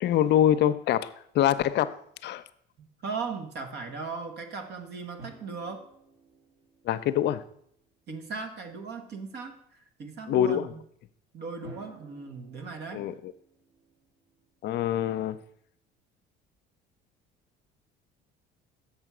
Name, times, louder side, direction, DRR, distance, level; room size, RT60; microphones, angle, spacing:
voice 1, 0.0-2.0 2.2-2.4 6.9-7.4 10.3-10.7 12.9-13.3 14.6-15.4, left 11 dB, 60° left, 13 dB, 0.6 m, -25 dB
voice 2, 2.8-5.8 8.1-10.8 11.3-13.1, right 4 dB, 55° right, 5 dB, 1.3 m, -38 dB
sound 1, 5.2-8.0 11.6-15.0, right 2 dB, 75° right, 3.8 m, -53 dB
7.2 x 5.6 x 6.1 m, 0.68 s
supercardioid pair, 100°, 20 cm